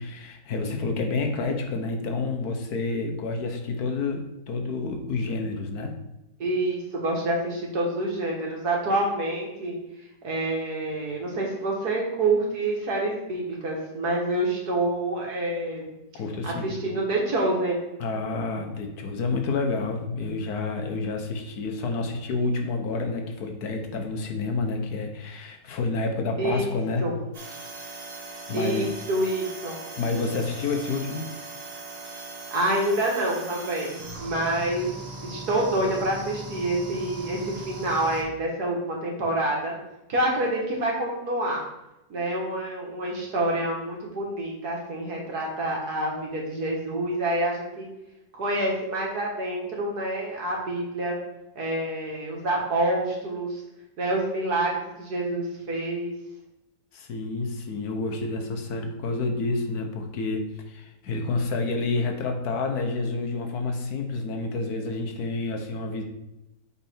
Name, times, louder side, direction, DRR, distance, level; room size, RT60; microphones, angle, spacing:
voice 1, 0.0-5.9 16.1-16.7 18.0-27.1 28.5-28.9 30.0-31.3 56.9-66.0, left 3 dB, 60° left, 3 dB, 1.4 m, -29 dB
voice 2, 6.4-9.8 10.2-15.9 16.4-17.8 26.4-27.1 28.5-29.8 32.5-34.9 35.2-39.7 40.1-41.6 42.1-47.9 48.3-51.2 51.6-53.6 54.0-56.1, right 1 dB, 60° right, -2 dB, 2.0 m, -27 dB
sound 1, 27.3-38.2, right 2 dB, 85° right, 2.3 m, -39 dB
7.4 x 4.1 x 4.4 m, 0.93 s
omnidirectional pair, 2.0 m